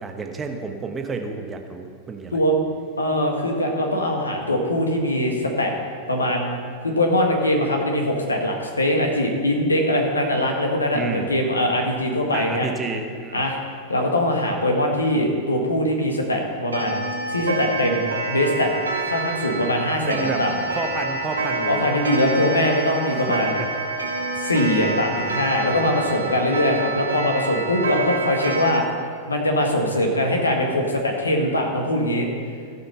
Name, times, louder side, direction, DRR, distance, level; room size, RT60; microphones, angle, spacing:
voice 1, 0.0-2.4 10.9-11.4 12.3-13.5 20.1-20.4 20.7-21.9 23.6-23.7, right 4 dB, 20° right, 4 dB, 1.1 m, -30 dB
voice 2, 3.0-5.7 6.1-6.6 6.8-12.7 13.3-13.6 13.9-17.0 17.3-18.7 19.0-20.5 21.7-23.5 24.4-28.8 29.3-32.3, left 1 dB, 80° left, 2 dB, 1.6 m, -22 dB
Clock, 16.7-28.8, right 2 dB, 75° right, 1.2 m, -27 dB
16.0 x 5.8 x 5.6 m, 2.1 s
figure-of-eight pair, 90°, 0 cm